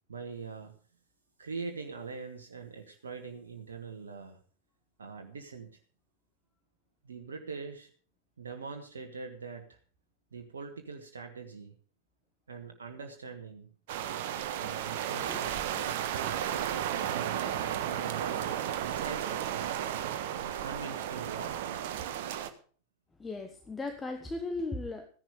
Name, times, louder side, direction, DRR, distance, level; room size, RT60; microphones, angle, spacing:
voice 1, 0.1-0.7 1.4-4.4 5.0-5.8 7.0-7.9 8.4-9.8 10.3-11.7 12.5-13.7 14.6-18.4 18.8-19.8 20.3-21.8, right 5 dB, 70° right, 3 dB, 1.5 m, -43 dB
sound 1, 13.9-22.5, right 10 dB, 50° right, 1.3 m, -34 dB
voice 2, 23.2-25.1, left 3 dB, 10° left, 6 dB, 1.3 m, -36 dB
15.0 x 10.5 x 5.1 m, 0.43 s
figure-of-eight pair, 90°, 0 cm